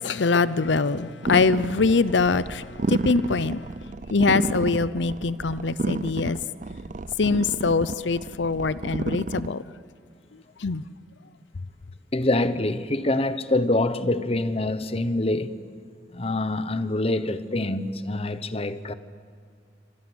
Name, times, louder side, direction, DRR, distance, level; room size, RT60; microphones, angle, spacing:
voice 1, 0.0-3.7 4.1-6.4 7.2-9.6 10.6-10.8, left 4 dB, 90° left, 0.7 m, -23 dB
sound 1, 1.2-9.5, right 2 dB, 45° right, 0.6 m, -31 dB
voice 2, 12.1-15.6 16.1-18.9, left 2 dB, 35° left, 1.1 m, -25 dB
28.5 x 24.5 x 8.1 m
head